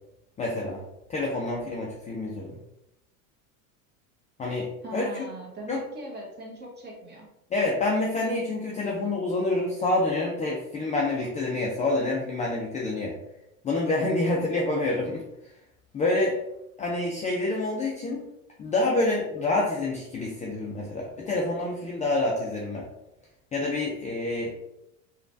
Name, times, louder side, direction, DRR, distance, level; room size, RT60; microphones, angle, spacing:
voice 1, 0.4-0.8 1.1-2.6 4.4-4.7 4.9-5.0 5.7-5.8 7.5-13.1 13.6-15.2 15.9-16.4 16.8-18.2 18.6-22.8 23.5-24.5, left 2 dB, 20° left, -3 dB, 0.4 m, -27 dB
voice 2, 4.8-7.3, right 2 dB, 25° right, -2 dB, 1.0 m, -40 dB
3.1 x 2.4 x 2.5 m, 0.85 s
hypercardioid pair, 100°, 42 cm